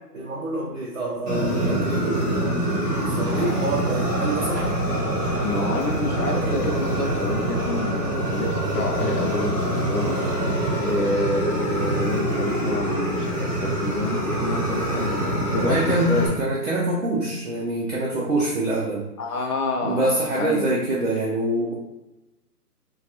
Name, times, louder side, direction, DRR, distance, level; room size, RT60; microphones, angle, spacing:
voice 1, 0.1-2.4 3.1-4.7 15.6-19.0 19.8-21.7, right 1 dB, 55° right, -4 dB, 0.5 m, -25 dB
Fire, 1.3-16.3, right 1 dB, 30° right, 0.9 m, -25 dB
sound 1, 2.7-11.2, right 3 dB, 85° right, 0.7 m, -37 dB
voice 2, 3.2-3.5 5.4-10.2 10.8-16.4 19.2-20.8, left 2 dB, 65° left, 2 dB, 0.7 m, -29 dB
2.3 x 2.2 x 2.8 m, 0.96 s
hypercardioid pair, 180°, 48 cm